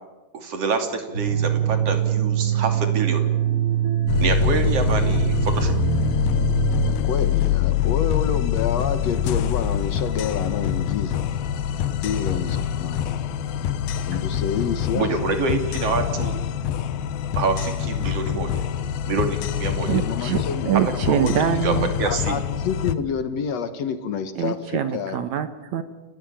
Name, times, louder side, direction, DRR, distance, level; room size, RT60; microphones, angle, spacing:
voice 1, 0.3-3.2 4.2-5.7 14.9-16.4 17.4-18.7 19.1-20.0 21.1-21.7 22.0-22.4, right 4 dB, 45° right, 6 dB, 3.4 m, -26 dB
sound 1, 1.1-6.9, right 11 dB, 25° right, 2.4 m, -23 dB
sound 2, 4.1-23.0, left 10 dB, 80° left, 2.8 m, -25 dB
voice 2, 6.8-11.3 12.0-13.1 14.1-15.1 20.0-20.7 22.1-25.2, left 6 dB, 60° left, 10 dB, 1.9 m, -28 dB
voice 3, 19.9-21.9 24.4-25.8, right 9 dB, 65° right, 10 dB, 2.0 m, -24 dB
29.5 x 17.5 x 8.9 m, 1.2 s
omnidirectional pair, 4.3 m